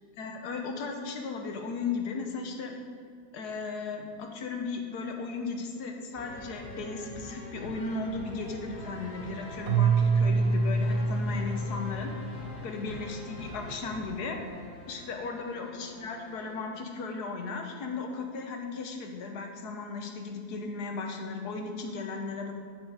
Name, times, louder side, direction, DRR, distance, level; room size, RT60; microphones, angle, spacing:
voice 1, 0.2-2.7 3.3-12.1 12.6-14.4 14.9-22.5, left 4 dB, 85° left, 3 dB, 1.5 m, -36 dB
sound 1, 6.1-16.7, equal, 45° left, 1.7 m, -44 dB
Keyboard (musical), 9.7-12.8, right 4 dB, 85° right, 1.2 m, -26 dB
8.9 x 5.8 x 4.9 m, 2.3 s
omnidirectional pair, 1.7 m